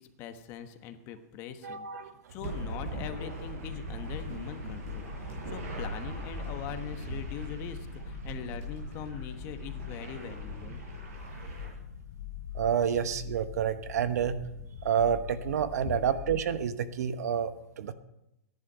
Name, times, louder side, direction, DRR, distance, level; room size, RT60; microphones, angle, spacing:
voice 1, 0.0-1.9 2.3-10.8 15.8-16.0, left 9 dB, 30° left, 8 dB, 1.2 m, -42 dB
voice 2, 1.6-2.1 12.5-14.4 14.8-17.9, right 8 dB, 75° right, 11 dB, 1.1 m, -29 dB
sound 1, 2.3-16.7, left 9 dB, 75° left, 2.6 m, -44 dB
sound 2, 2.4-11.7, right 3 dB, 55° right, 7.7 m, -40 dB
17.0 x 11.0 x 5.6 m, 0.87 s
supercardioid pair, 160°, 9 cm